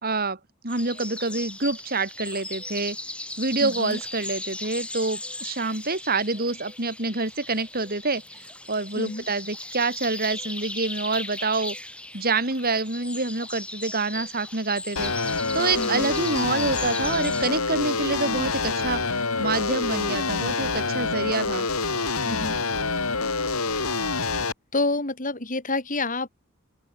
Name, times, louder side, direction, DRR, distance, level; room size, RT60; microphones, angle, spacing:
voice 1, 0.0-3.0 3.4-11.7 12.1-15.1 15.5-21.7, right 3 dB, 45° right, 5.0 m, -27 dB
sound 1, 0.7-17.5, left 1 dB, 5° left, 6.5 m, -37 dB
voice 2, 3.6-4.0 9.0-9.2 15.8-16.1 22.2-22.6 24.7-26.3, left 2 dB, 40° left, 4.3 m, -28 dB
sound 2, 15.0-24.5, left 4 dB, 90° left, 5.4 m, -26 dB
open air
head